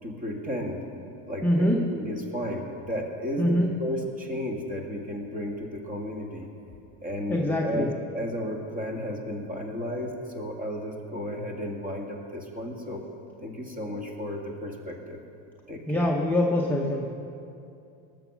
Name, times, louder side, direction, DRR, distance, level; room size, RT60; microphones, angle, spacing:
voice 1, 0.0-0.8 1.3-6.5 7.0-13.0 13.4-15.2 15.7-16.1, equal, 20° right, 1 dB, 1.9 m, -33 dB
voice 2, 1.4-1.8 3.4-3.7 7.3-7.9 15.9-17.1, left 1 dB, 5° left, -1 dB, 0.7 m, -24 dB
19.5 x 7.1 x 6.1 m, 2.6 s
supercardioid pair, 135°, 38 cm